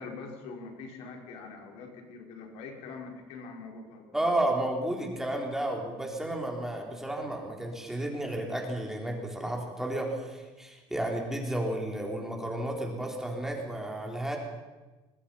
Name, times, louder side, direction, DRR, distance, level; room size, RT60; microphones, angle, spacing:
voice 1, 0.0-4.4, left 4 dB, 75° left, 2 dB, 4.8 m, -43 dB
voice 2, 4.1-14.4, right 1 dB, 5° right, 1 dB, 3.8 m, -32 dB
24.0 x 21.5 x 5.7 m, 1.2 s
cardioid pair, 150°, 10 cm